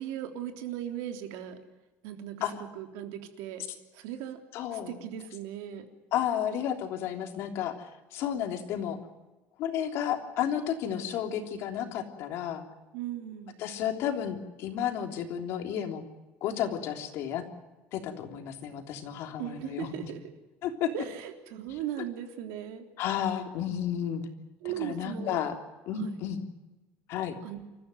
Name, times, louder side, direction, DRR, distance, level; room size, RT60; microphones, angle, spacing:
voice 1, 0.0-1.6 2.0-2.4 2.7-3.6 3.9-4.4 4.7-5.9 12.9-13.6 19.4-20.3 20.9-22.9 24.6-25.4 25.9-26.3 27.4-27.6, right 10 dB, 80° right, 5 dB, 3.5 m, -38 dB
voice 2, 4.5-4.9 6.1-9.0 9.6-12.6 13.6-16.0 16.4-17.4 17.9-19.9 20.6-20.9 23.0-24.2 24.8-25.6 25.9-26.4 27.1-27.4, left 9 dB, 55° left, 5 dB, 3.3 m, -32 dB
28.5 x 14.5 x 9.3 m, 1.1 s
cardioid pair, 160°, 5 cm